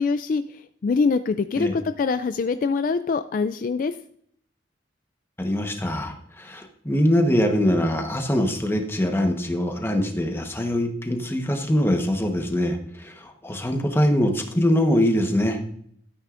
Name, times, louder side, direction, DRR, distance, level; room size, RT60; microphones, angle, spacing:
voice 1, 0.0-4.0, left 4 dB, 45° left, 11 dB, 0.3 m, -24 dB
voice 2, 5.4-15.6, equal, 15° left, 4 dB, 1.1 m, -23 dB
13.0 x 9.0 x 2.5 m, 0.67 s
head